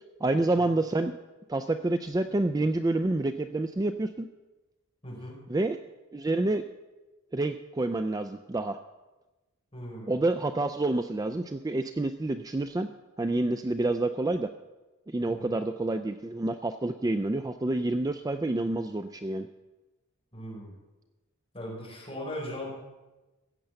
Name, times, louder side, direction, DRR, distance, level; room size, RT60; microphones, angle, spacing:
voice 1, 0.2-1.1 1.5-4.3 5.5-5.8 6.1-6.6 7.3-8.8 10.1-12.9 13.2-14.5 15.1-19.5, right 2 dB, 15° right, 9 dB, 0.3 m, -28 dB
voice 2, 5.0-5.4 9.7-10.1 15.3-15.5 20.3-20.7 21.5-22.7, left 1 dB, 25° left, -3 dB, 4.6 m, -39 dB
16.0 x 6.8 x 7.7 m, 1.1 s
head